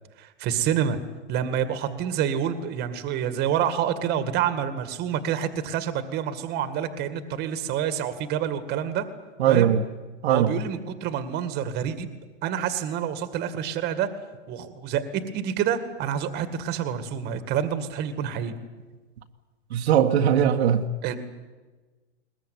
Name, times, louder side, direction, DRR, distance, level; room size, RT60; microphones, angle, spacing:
voice 1, 0.2-1.0 1.3-9.1 9.5-9.7 10.3-12.1 12.4-14.1 14.5-18.5 21.0-21.2, right 9 dB, 25° right, 2.0 m, -27 dB
voice 2, 9.4-9.9 10.2-10.5 19.7-20.9, right 9 dB, 60° right, 1.6 m, -20 dB
21.5 x 21.0 x 9.6 m
hypercardioid pair, 145°, 36 cm